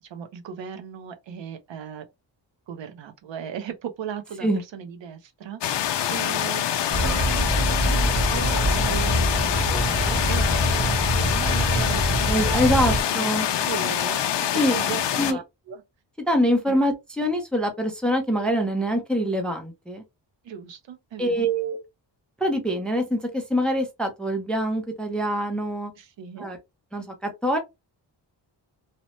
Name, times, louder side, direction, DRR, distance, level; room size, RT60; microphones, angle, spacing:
voice 1, 0.0-2.1 2.7-6.7 7.0-12.3 12.8-13.3 13.6-15.0 15.3-15.8 16.7-16.9 20.4-21.5 26.0-26.5, right 8 dB, 70° right, 0.6 m, -37 dB
sound 1, 5.6-15.3, left 10 dB, 65° left, 0.5 m, -25 dB
sound 2, 6.9-13.0, right 1 dB, 40° right, 0.9 m, -24 dB
voice 2, 12.3-13.5 14.5-14.8 15.2-15.4 16.3-20.0 21.2-21.8 22.4-25.9 26.4-26.6 26.9-27.6, equal, ahead, 0.4 m, -24 dB
2.8 x 2.0 x 3.0 m
wide cardioid pair, 155°, 46 cm